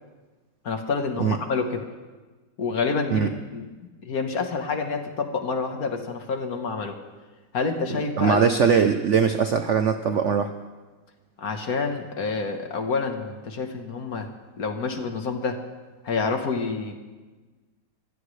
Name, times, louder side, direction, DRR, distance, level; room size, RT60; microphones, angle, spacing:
voice 1, 0.6-1.9 2.6-3.7 4.0-7.0 7.5-8.4 11.4-14.3 14.6-15.6 16.0-16.9, left 4 dB, 50° left, 5 dB, 1.6 m, -28 dB
voice 2, 8.2-10.5, right 6 dB, 85° right, 7 dB, 0.6 m, -21 dB
23.0 x 15.5 x 3.3 m, 1.3 s
omnidirectional pair, 2.1 m